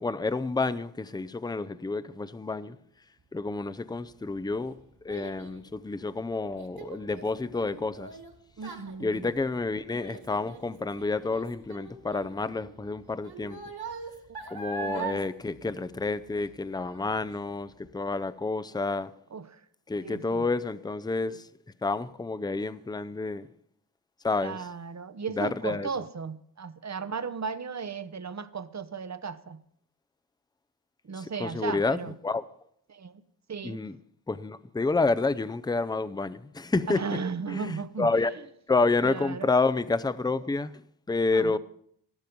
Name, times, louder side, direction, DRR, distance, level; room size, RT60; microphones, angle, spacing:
voice 1, 0.0-2.8 3.3-4.8 5.0-8.1 9.0-13.6 14.5-19.1 19.9-21.4 21.8-23.5 24.2-24.6 25.3-25.9 31.2-32.4 33.6-34.0 34.3-37.0 37.5-38.3 38.7-40.8 41.1-41.6, left 3 dB, 10° left, 0.5 m, -29 dB
Child speech kid speaking, 3.9-16.6 16.9-17.3 17.8-17.9, right 4 dB, 60° right, 2.3 m, -42 dB
voice 2, 8.6-9.3 14.8-15.3 19.3-19.6 20.0-20.5 24.4-29.6 31.0-32.2 32.9-33.2 33.5-33.8 36.9-38.1 39.0-39.5 41.3-41.6, right 5 dB, 40° right, 0.8 m, -36 dB
14.0 x 12.0 x 5.3 m
wide cardioid pair, 80°, 42 cm